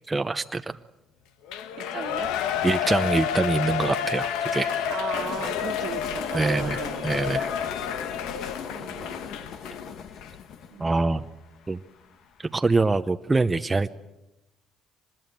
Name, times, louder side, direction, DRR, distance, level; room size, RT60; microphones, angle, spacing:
voice 1, 0.1-0.8 2.6-4.9 6.3-7.5 10.8-11.2 11.7-11.8 12.4-13.9, right 3 dB, 20° right, 7 dB, 0.7 m, -25 dB
Shout / Cheering, 1.5-9.8 10.2-10.3, left 8 dB, 85° left, 1.2 m, -30 dB
voice 2, 1.8-2.3 4.9-7.0 8.7-9.5 10.7-10.9, right 8 dB, 60° right, 8 dB, 1.6 m, -36 dB
sound 1, 5.1-12.1, left 7 dB, 70° left, 1.8 m, -37 dB
24.5 x 20.5 x 8.0 m, 0.95 s
supercardioid pair, 80°, 0 cm